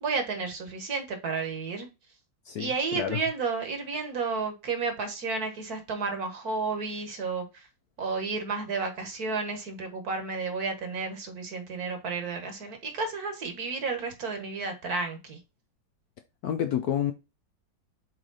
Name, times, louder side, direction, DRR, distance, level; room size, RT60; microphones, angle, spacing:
voice 1, 0.0-1.9 2.6-7.7 8.0-15.4, right 4 dB, 55° right, 1.7 m, -32 dB
voice 2, 2.5-3.2 16.4-17.1, left 10 dB, 70° left, 0.9 m, -29 dB
7.4 x 3.3 x 3.9 m
omnidirectional pair, 2.1 m